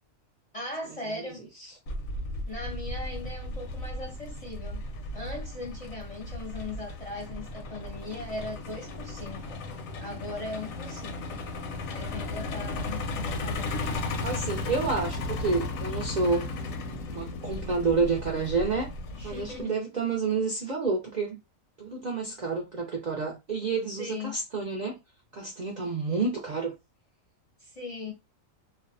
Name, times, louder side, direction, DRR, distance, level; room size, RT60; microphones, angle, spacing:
voice 1, 0.5-1.4 2.5-4.8 5.1-9.6 10.0-11.4 11.9-13.8 19.1-19.8 24.0-24.4 27.6-28.1, left 2 dB, 35° left, 0.6 m, -39 dB
Truck, 1.9-19.6, left 2 dB, 80° left, 1.0 m, -35 dB
voice 2, 14.2-16.5 17.1-18.9 19.2-21.4 21.8-25.0 25.3-26.7, right 4 dB, 55° right, 0.5 m, -29 dB
2.6 x 2.0 x 2.5 m
omnidirectional pair, 1.4 m